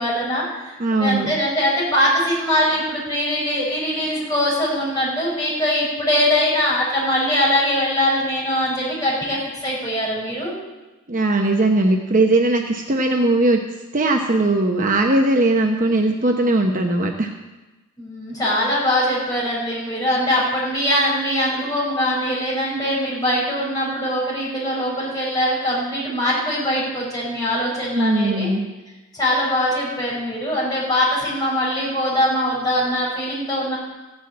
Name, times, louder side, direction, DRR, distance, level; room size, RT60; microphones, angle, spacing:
voice 1, 0.0-10.5 18.0-28.5 29.1-33.8, equal, 15° left, -5 dB, 5.5 m, -22 dB
voice 2, 0.8-1.3 11.1-13.6 13.9-17.3 27.9-28.7, right 2 dB, 35° right, 3 dB, 0.9 m, -19 dB
15.5 x 6.4 x 8.5 m, 1.1 s
head